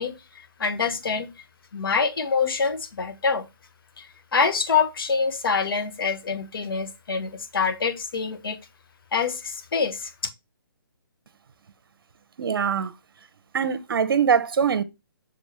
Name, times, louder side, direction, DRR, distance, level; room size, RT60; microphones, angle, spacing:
voice 1, 0.0-1.3 1.7-3.5 4.0-8.6 9.1-10.1, left 5 dB, 65° left, 1.5 m, -26 dB
voice 2, 12.4-12.9 13.5-14.8, right 7 dB, 65° right, 0.8 m, -22 dB
6.3 x 5.2 x 3.0 m
hypercardioid pair, 150°, 13 cm